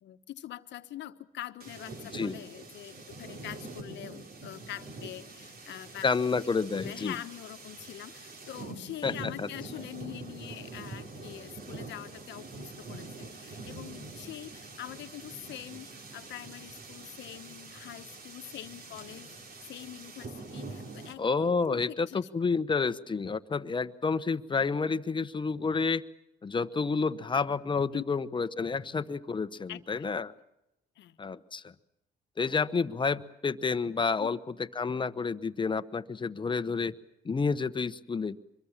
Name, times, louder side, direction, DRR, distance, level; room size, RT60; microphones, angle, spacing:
voice 1, 0.0-6.1 6.3-6.4 6.7-19.3 19.6-22.2 27.9-28.0 29.7-30.1 31.0-31.2 34.2-34.3, left 13 dB, 70° left, 10 dB, 1.3 m, -44 dB
sound 1, 1.6-21.1, right 3 dB, 55° right, 3.6 m, -45 dB
voice 2, 6.0-7.1 9.0-9.1 9.4-9.5 21.2-26.0 26.4-30.3 31.2-31.7 32.4-36.9 37.2-38.4, left 4 dB, 25° left, 12 dB, 1.1 m, -29 dB
24.5 x 22.5 x 7.4 m, 0.88 s
cardioid pair, 90°, 19 cm